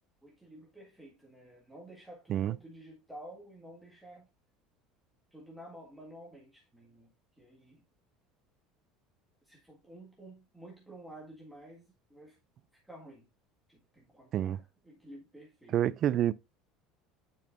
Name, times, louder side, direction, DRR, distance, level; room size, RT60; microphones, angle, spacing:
voice 1, 0.2-4.3 5.3-7.8 9.4-12.4 12.7-13.3 13.7-15.8, right 1 dB, ahead, 1.7 m, -51 dB
voice 2, 15.7-16.3, right 11 dB, 40° right, 0.4 m, -28 dB
9.3 x 5.4 x 2.5 m
cardioid pair, 150°, 0 cm